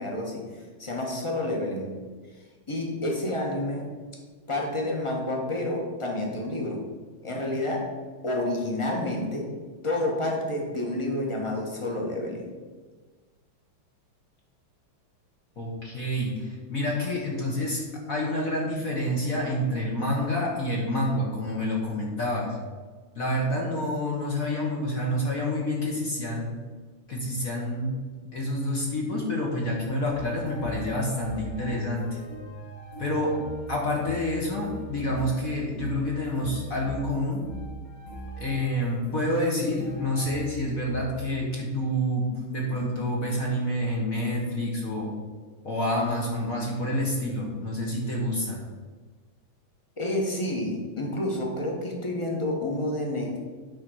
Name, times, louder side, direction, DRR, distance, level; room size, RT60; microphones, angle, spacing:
voice 1, 0.0-1.9 2.7-3.9 4.5-6.9 7.2-7.9 8.2-9.5 9.8-12.5 50.0-53.4, left 1 dB, 15° left, 0 dB, 1.1 m, -29 dB
voice 2, 15.6-17.8 18.1-22.6 23.1-26.5 27.1-27.9 28.3-32.0 33.0-33.3 33.7-37.4 38.4-45.1 45.6-48.6, left 1 dB, 45° left, -3 dB, 1.6 m, -28 dB
sound 1, 30.1-41.3, equal, 65° left, 3.3 m, -40 dB
9.0 x 4.2 x 6.3 m, 1.4 s
omnidirectional pair, 2.3 m